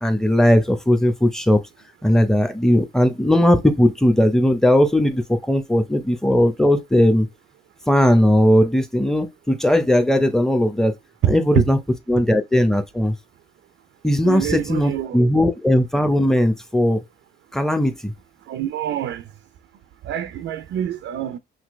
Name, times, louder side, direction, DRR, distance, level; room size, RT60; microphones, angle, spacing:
voice 1, 0.0-1.6 2.0-7.3 7.9-10.9 11.3-11.8 12.1-13.1 14.0-17.0 17.5-18.1, left 1 dB, ahead, 0.9 m, -18 dB
voice 2, 11.2-11.7 14.2-15.2 18.5-19.3 20.0-21.4, right 11 dB, 75° right, 0.6 m, -25 dB
5.9 x 2.8 x 3.2 m
cardioid pair, 90°, 20 cm